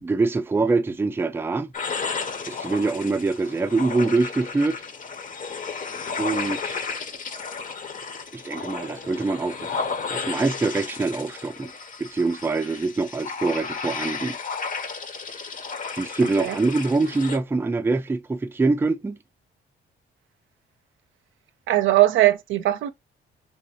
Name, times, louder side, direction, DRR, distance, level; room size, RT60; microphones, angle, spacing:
voice 1, 0.0-1.7 2.4-4.8 6.2-6.9 8.3-11.7 12.0-14.4 16.0-19.2, right 3 dB, 10° right, 0.4 m, -24 dB
sound 1, 1.7-17.4, left 5 dB, 40° left, 0.7 m, -33 dB
voice 2, 21.7-22.9, right 15 dB, 80° right, 0.5 m, -19 dB
3.4 x 3.0 x 2.9 m
cardioid pair, 90°, 20 cm